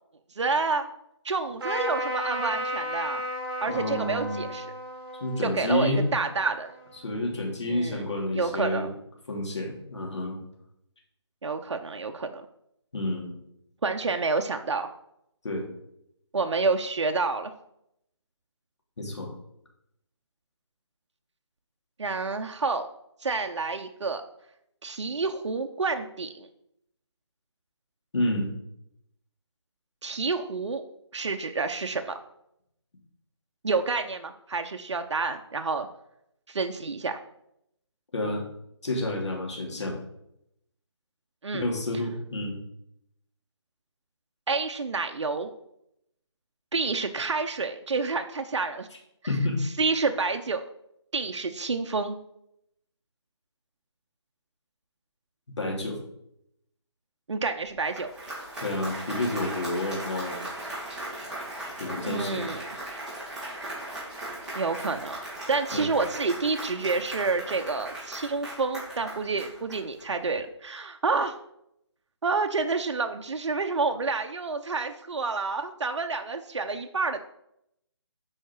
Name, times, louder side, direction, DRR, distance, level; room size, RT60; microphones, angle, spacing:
voice 1, 0.4-0.9 1.2-3.2 3.6-4.7 5.4-6.7 7.7-8.0 8.3-8.9 11.4-12.5 13.8-14.9 16.3-17.5 22.0-22.9 23.2-24.2 24.8-26.5 30.0-30.8 31.1-32.2 33.6-35.9 36.5-37.2 41.4-41.7 44.5-45.5 46.7-48.9 49.8-50.7 51.1-52.2 57.3-58.1 62.0-62.6 64.5-65.2 65.5-71.4 72.2-77.2, right 4 dB, 75° right, 6 dB, 0.8 m, -28 dB
Trumpet, 1.6-7.1, equal, 55° right, 1.9 m, -34 dB
voice 2, 3.7-4.5 5.2-6.1 7.0-8.9 9.3-10.4 12.9-13.4 15.4-15.7 19.0-19.3 28.1-28.5 38.1-38.4 38.8-40.0 41.5-42.6 49.3-49.6 55.6-56.0 58.6-60.4 61.8-62.5 65.7-65.9, left 1 dB, 70° left, -1 dB, 3.0 m, -29 dB
Applause, 57.7-70.2, right 1 dB, 5° right, 2.5 m, -38 dB
8.7 x 4.8 x 4.7 m, 0.78 s
figure-of-eight pair, 160°, 15 cm